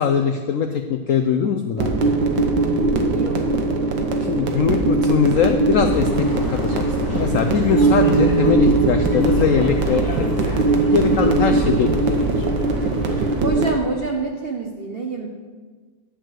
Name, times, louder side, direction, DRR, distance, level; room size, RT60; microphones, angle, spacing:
voice 1, 0.0-2.2 4.3-10.4 10.9-12.4, left 7 dB, 85° left, 6 dB, 0.7 m, -21 dB
sound 1, 1.8-13.7, right 3 dB, 75° right, 1.7 m, -20 dB
voice 2, 3.1-3.5 3.8-4.4 13.4-15.3, right 4 dB, 55° right, 1 dB, 0.7 m, -27 dB
sound 2, 5.9-13.4, equal, 10° left, 1.3 m, -29 dB
10.0 x 4.6 x 7.7 m, 1.4 s
omnidirectional pair, 2.0 m